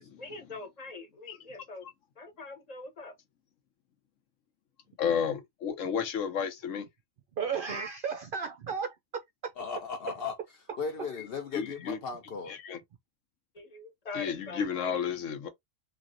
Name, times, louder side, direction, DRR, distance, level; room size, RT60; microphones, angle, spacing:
voice 1, 0.2-1.9 2.2-3.1 13.5-14.9, left 3 dB, 35° left, 1.0 m, -43 dB
voice 2, 5.0-6.9 11.5-12.0 12.5-12.8 14.1-15.5, left 7 dB, 75° left, 1.1 m, -32 dB
voice 3, 7.4-9.5, right 6 dB, 60° right, 0.6 m, -34 dB
voice 4, 9.6-10.4 10.8-12.6, left 5 dB, 60° left, 0.7 m, -36 dB
3.1 x 2.6 x 2.5 m
omnidirectional pair, 1.3 m